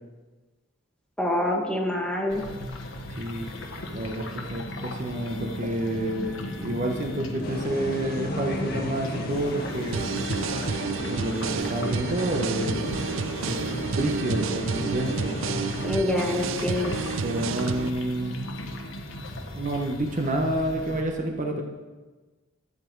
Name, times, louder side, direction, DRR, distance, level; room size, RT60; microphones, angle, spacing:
voice 1, 1.2-2.4 15.8-17.0, left 1 dB, 5° left, -1 dB, 1.5 m, -26 dB
sound 1, 2.3-21.0, left 1 dB, 75° left, 1.3 m, -36 dB
voice 2, 3.9-10.0 11.0-12.9 13.4-13.6 13.9-15.4 17.2-18.5 19.5-21.6, right 1 dB, 40° right, 2 dB, 1.0 m, -29 dB
sound 2, 7.4-15.9, left 1 dB, 50° left, 1.5 m, -37 dB
sound 3, 9.9-17.9, right 5 dB, 80° right, 0.5 m, -31 dB
12.5 x 7.8 x 4.6 m, 1.3 s
head